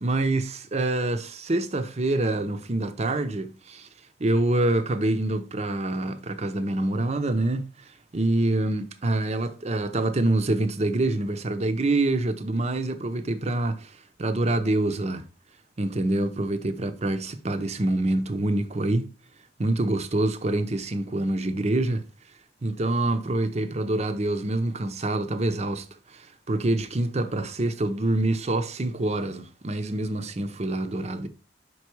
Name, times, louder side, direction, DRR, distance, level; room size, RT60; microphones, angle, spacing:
voice 1, 0.0-3.9 4.2-7.7 8.1-13.9 14.2-15.2 15.8-19.1 19.6-22.0 22.6-25.8 26.1-31.3, right 2 dB, 40° right, 0.7 m, -26 dB
5.9 x 4.7 x 4.6 m
head